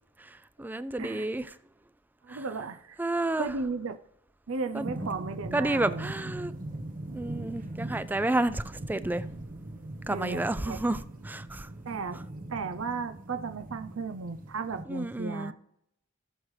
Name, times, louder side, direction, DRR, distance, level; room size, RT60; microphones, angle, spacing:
voice 1, 0.2-1.5 2.3-2.4 3.0-3.5 4.7-4.9 5.5-6.5 7.1-9.2 10.1-11.7 14.9-15.5, right 2 dB, 10° right, 0.3 m, -30 dB
voice 2, 2.2-3.0 3.4-4.0 4.5-6.1 10.1-10.8 11.9-12.2 12.5-15.5, right 4 dB, 85° right, 0.6 m, -35 dB
sound 1, 4.8-14.8, right 1 dB, 45° right, 1.0 m, -40 dB
17.5 x 6.3 x 3.2 m
head